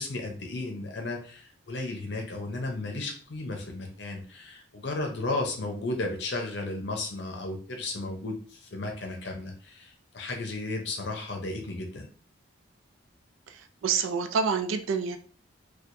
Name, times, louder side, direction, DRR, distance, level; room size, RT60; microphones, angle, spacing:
voice 1, 0.0-12.1, left 2 dB, 60° left, 2 dB, 0.6 m, -34 dB
voice 2, 13.8-15.2, right 5 dB, 90° right, 8 dB, 0.4 m, -27 dB
4.4 x 2.3 x 2.5 m, 0.42 s
head